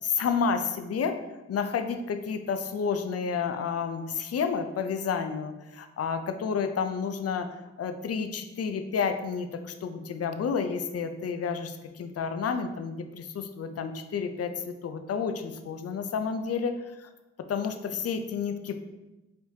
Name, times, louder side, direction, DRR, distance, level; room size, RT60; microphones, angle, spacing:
voice 1, 0.0-1.2 1.5-7.5 7.8-16.8 17.5-18.8, left 6 dB, 55° left, 8 dB, 0.4 m, -30 dB
4.6 x 3.3 x 2.7 m, 1.0 s
cardioid pair, 80°, 29 cm